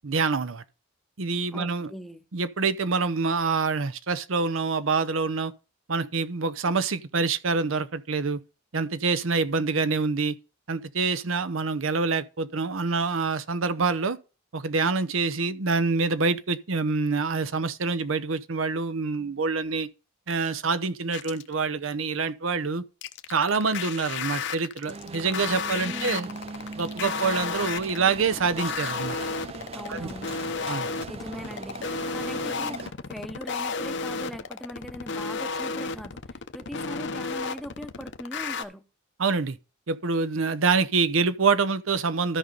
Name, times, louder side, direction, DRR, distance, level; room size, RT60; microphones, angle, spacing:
voice 1, 0.0-0.6 1.2-1.9 2.3-5.5 5.9-8.4 8.7-10.3 10.7-14.2 14.5-19.9 20.3-22.8 23.3-26.3 26.8-29.2 29.9-30.1 30.7-30.9 39.2-39.6 39.9-42.4, right 4 dB, 80° right, 0.8 m, -26 dB
voice 2, 1.5-2.2 25.8-26.4 29.7-30.3 31.1-38.8, equal, ahead, 0.7 m, -40 dB
sound 1, 21.1-21.5 23.0-38.6, left 4 dB, 60° left, 0.8 m, -32 dB
sound 2, 24.9-32.9, right 4 dB, 30° right, 0.4 m, -40 dB
13.5 x 5.3 x 3.9 m
head